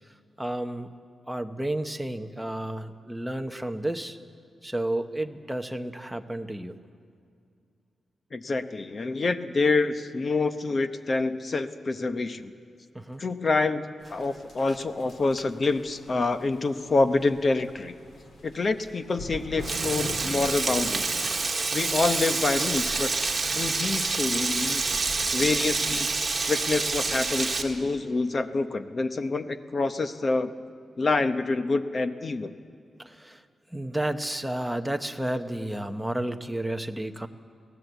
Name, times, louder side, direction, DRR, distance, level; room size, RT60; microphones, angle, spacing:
voice 1, 0.4-0.9 1.3-4.2 4.6-6.8 12.9-13.2 14.7-14.8 33.0-33.4 33.7-37.3, right 1 dB, 5° right, 6 dB, 0.8 m, -31 dB
voice 2, 8.3-12.5 13.2-17.9 18.4-21.2 21.7-23.1 23.5-24.8 25.3-26.1 26.5-30.5 31.0-32.5, left 3 dB, 35° left, 10 dB, 0.8 m, -27 dB
sound 1, 14.0-27.7, left 1 dB, 60° left, 3.8 m, -43 dB
Frying (food), 19.6-27.6, right 4 dB, 25° right, 1.6 m, -27 dB
24.5 x 17.5 x 8.1 m, 2.3 s
wide cardioid pair, 175°, 0 cm